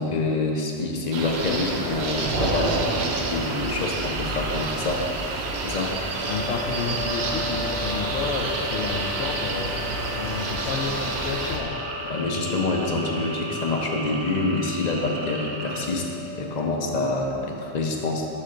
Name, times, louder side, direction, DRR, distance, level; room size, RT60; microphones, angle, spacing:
voice 1, 0.0-5.0 5.6-6.0 12.1-16.1 16.3-18.3, left 2 dB, 45° left, 1 dB, 0.7 m, -26 dB
sound 1, 1.1-11.6, right 2 dB, 75° right, 0.9 m, -29 dB
sound 2, 2.0-15.9, right 4 dB, 55° right, 0.5 m, -37 dB
sound 3, 6.1-17.1, left 4 dB, 25° right, 0.8 m, -37 dB
voice 2, 6.3-9.7 10.1-11.8, left 5 dB, 85° left, 1 dB, 0.8 m, -30 dB
6.7 x 4.3 x 5.0 m, 2.9 s
omnidirectional pair, 1.1 m